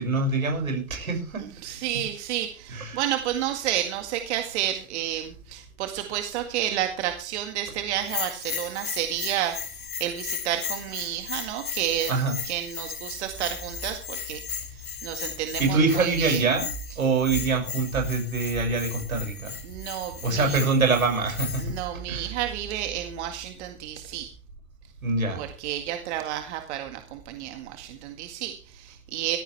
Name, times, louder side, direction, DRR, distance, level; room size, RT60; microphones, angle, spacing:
voice 1, 0.0-1.4 2.7-3.0 12.1-12.3 15.6-16.7 17.0-19.6 20.2-21.6 22.1-22.3 25.0-25.4, right 3 dB, 90° right, 4 dB, 6.6 m, -24 dB
voice 2, 1.6-12.1 12.5-14.4 14.7-16.6 19.6-20.6 21.6-24.3 25.3-29.4, right 12 dB, 55° right, 6 dB, 2.0 m, -31 dB
Bell, 8.0-21.8, left 7 dB, 85° left, 3.0 m, -36 dB
15.0 x 14.5 x 3.4 m, 0.39 s
hypercardioid pair, 115°, 40 cm